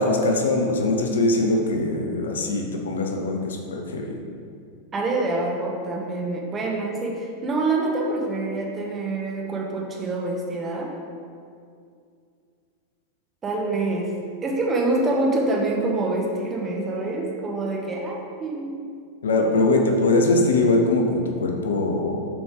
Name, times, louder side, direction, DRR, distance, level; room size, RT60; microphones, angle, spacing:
voice 1, 0.0-4.1 19.2-22.2, left 2 dB, 65° left, 2 dB, 0.7 m, -22 dB
voice 2, 4.9-10.9 13.4-14.2 14.4-18.7, right 2 dB, 20° right, -1 dB, 1.0 m, -26 dB
7.0 x 4.2 x 3.6 m, 2.3 s
figure-of-eight pair, 90°, 0 cm